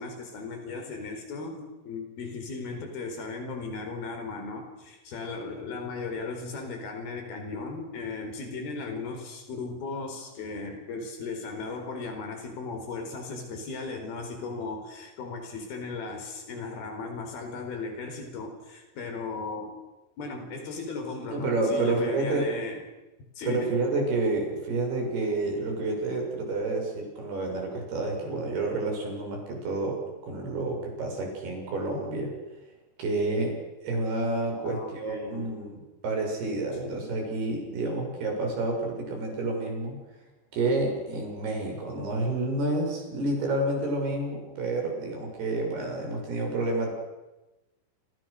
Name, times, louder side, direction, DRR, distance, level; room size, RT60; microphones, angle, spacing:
voice 1, 0.0-19.8 20.2-22.8 23.4-23.8 34.5-35.7 36.8-37.2, left 4 dB, 55° left, 5 dB, 6.3 m, -36 dB
voice 2, 21.3-22.5 23.4-32.3 33.0-33.5 33.8-40.0 40.5-46.9, right 2 dB, 55° right, 1 dB, 8.5 m, -29 dB
29.5 x 27.5 x 6.7 m, 1.1 s
omnidirectional pair, 5.5 m